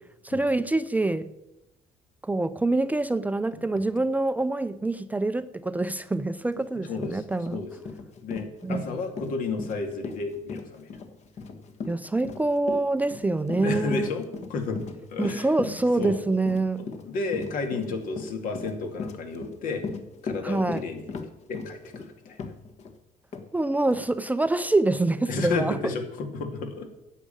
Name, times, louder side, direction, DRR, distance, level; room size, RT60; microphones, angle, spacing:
voice 1, 0.2-1.3 2.2-7.6 8.6-8.9 11.9-14.1 15.2-16.9 20.4-20.8 23.5-25.8, right 2 dB, 10° right, 0.5 m, -26 dB
Run, 6.6-6.7 7.0-22.9 23.3-23.5 23.9-24.0, left 4 dB, 50° left, 1.6 m, -37 dB
voice 2, 6.8-7.2 7.5-7.8 8.2-10.9 13.6-14.8 15.1-15.5 15.9-16.2 16.8-19.8 20.2-21.1 21.5-22.4 25.3-27.0, left 4 dB, 70° left, 2.4 m, -32 dB
9.8 x 7.5 x 8.9 m
cardioid pair, 115°, 15 cm